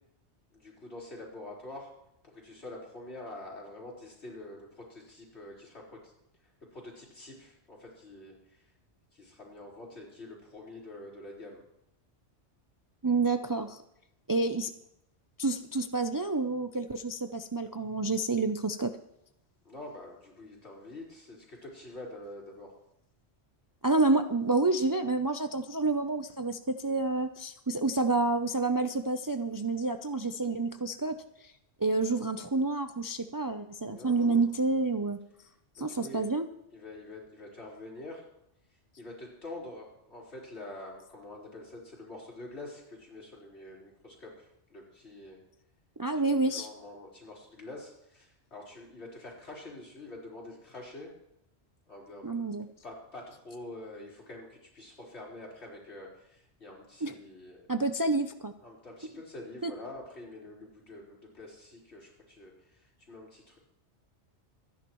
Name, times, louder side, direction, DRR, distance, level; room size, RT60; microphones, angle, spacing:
voice 1, 0.5-1.9 2.2-6.1 6.7-8.6 9.1-11.6 19.6-22.7 33.9-34.5 35.8-36.3 36.7-38.2 39.0-45.4 46.1-51.1 51.9-52.4 52.8-57.7 58.6-63.6, left 2 dB, 70° left, -5 dB, 4.8 m, -46 dB
voice 2, 13.0-13.8 14.3-14.7 15.4-19.0 23.8-31.2 31.8-35.2 35.8-36.5 46.0-46.7 52.2-52.7 57.0-57.1 57.7-58.5 59.6-59.7, right 3 dB, 25° right, 7 dB, 0.4 m, -29 dB
26.5 x 10.5 x 3.1 m, 0.81 s
omnidirectional pair, 1.2 m